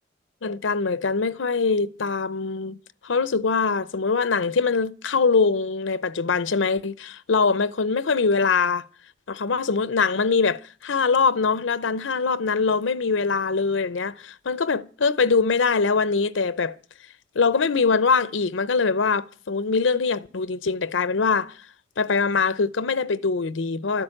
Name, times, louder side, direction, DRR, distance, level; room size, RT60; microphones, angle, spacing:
voice 1, 0.4-2.8 3.0-8.8 9.3-16.7 17.3-21.5 22.0-24.0, left 4 dB, 90° left, 0.7 m, -23 dB
13.0 x 11.0 x 8.9 m
head